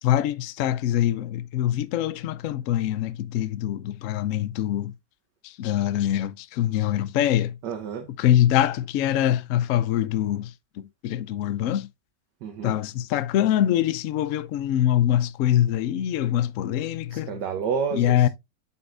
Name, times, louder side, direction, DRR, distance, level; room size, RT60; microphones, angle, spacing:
voice 1, 0.0-4.9 5.4-7.6 8.2-11.9 12.6-17.3 17.9-18.3, left 11 dB, 85° left, 0.7 m, -24 dB
voice 2, 7.6-8.1 12.4-12.7 17.1-18.3, right 6 dB, 75° right, 1.5 m, -30 dB
7.9 x 5.6 x 2.5 m
omnidirectional pair, 1.9 m